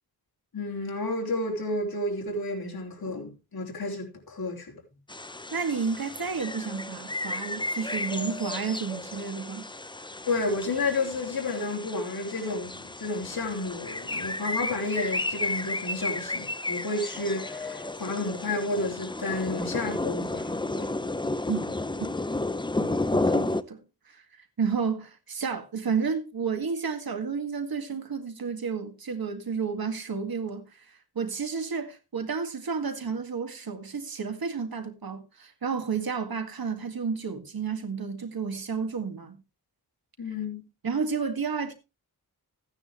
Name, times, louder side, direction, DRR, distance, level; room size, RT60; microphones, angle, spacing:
voice 1, 0.5-4.7 10.3-20.9 40.2-40.6, left 2 dB, 70° left, 4.0 m, -31 dB
sound 1, 5.1-23.6, left 2 dB, 10° left, 0.6 m, -32 dB
voice 2, 5.5-9.7 21.5-21.7 22.8-23.8 24.1-24.2 24.6-39.4 40.8-41.7, right 5 dB, 70° right, 2.0 m, -31 dB
15.0 x 9.7 x 3.1 m
wide cardioid pair, 115°, 38 cm